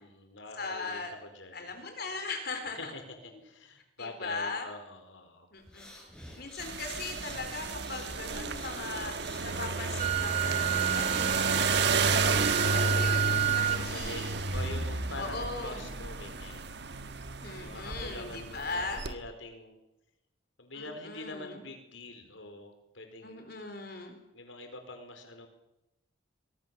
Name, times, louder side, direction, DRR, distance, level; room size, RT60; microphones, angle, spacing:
voice 1, 0.0-1.7 2.8-5.5 10.8-11.4 13.5-16.7 17.5-19.7 20.6-23.5 24.3-25.5, left 2 dB, 75° left, 6 dB, 4.6 m, -45 dB
voice 2, 0.6-1.1 1.5-2.9 4.0-4.7 5.5-5.9 6.4-9.2 9.4-11.7 12.1-14.3 15.2-15.9 17.4-19.2 20.7-21.6 23.2-24.2, left 3 dB, 50° left, 6 dB, 4.0 m, -39 dB
sound 1, 5.6-12.7, left 1 dB, 5° left, 6.7 m, -52 dB
sound 2, 6.6-19.1, right 4 dB, 55° right, 1.4 m, -31 dB
Wind instrument woodwind instrument, 10.0-13.8, right 14 dB, 35° right, 1.2 m, -30 dB
24.0 x 22.0 x 7.2 m, 0.93 s
head